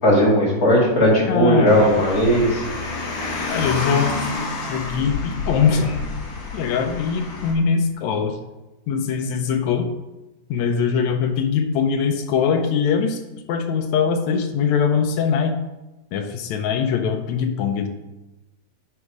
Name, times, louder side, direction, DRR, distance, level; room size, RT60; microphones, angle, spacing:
voice 1, 0.0-2.6, equal, 30° left, -5 dB, 2.4 m, -17 dB
voice 2, 1.3-2.0 3.5-4.2 4.6-5.9 6.5-8.4 8.9-9.9 10.5-13.2 13.5-15.6 16.1-17.9, left 6 dB, 75° left, 5 dB, 1.7 m, -22 dB
Car, 1.7-7.5, left 3 dB, 55° left, 2.6 m, -29 dB
9.9 x 4.5 x 5.0 m, 1.0 s
omnidirectional pair, 4.0 m